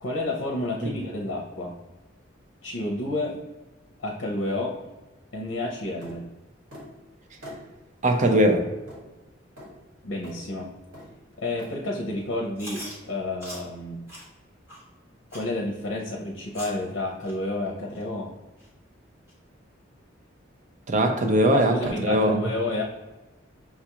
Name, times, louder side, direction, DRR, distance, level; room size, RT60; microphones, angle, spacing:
voice 1, 0.0-1.8 2.6-3.4 4.0-4.9 5.3-6.3 10.0-10.7 11.4-14.0 15.3-18.3 21.5-22.8, left 2 dB, 85° left, 0 dB, 0.6 m, -30 dB
sound 1, 6.0-6.2 6.7-6.9 7.4-7.6 8.2-8.4 8.9-9.0 9.6-9.7 10.2-10.4 10.9-11.1 11.6-11.7, equal, 80° right, 1.4 m, -43 dB
voice 2, 8.0-8.7 20.9-22.4, right 1 dB, 40° right, 4 dB, 0.5 m, -21 dB
Chewing mastication, 12.6-13.0 13.4-13.6 14.1-14.2 14.7-14.8 15.3-15.5 16.0-16.1 16.5-16.8 17.2-17.3 17.9-18.0 18.6-18.7 19.3-19.4, equal, 15° right, 1.1 m, -40 dB
5.8 x 2.4 x 2.9 m, 1.1 s
head